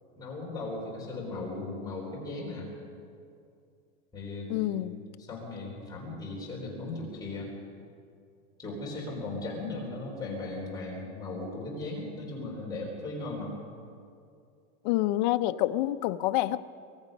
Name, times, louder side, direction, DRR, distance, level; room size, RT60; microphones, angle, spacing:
voice 1, 0.2-2.7 4.1-4.9 5.2-7.5 8.6-13.5, left 2 dB, 10° left, 3.9 m, -37 dB
voice 2, 4.5-5.0 14.8-16.6, left 15 dB, 45° left, 0.7 m, -27 dB
23.5 x 22.0 x 5.3 m
supercardioid pair, 175°, 32 cm